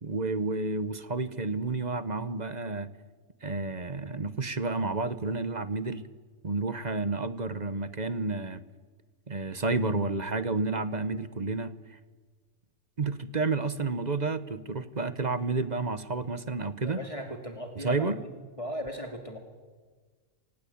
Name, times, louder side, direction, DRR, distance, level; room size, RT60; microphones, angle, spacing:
voice 1, 0.0-2.9 3.4-6.0 6.4-8.6 9.3-12.0 13.0-17.0 17.8-18.2, right 3 dB, 35° right, 13 dB, 1.1 m, -30 dB
voice 2, 16.8-18.3 18.6-19.4, equal, 20° left, 4 dB, 2.9 m, -37 dB
28.0 x 19.0 x 8.7 m, 1.5 s
omnidirectional pair, 1.5 m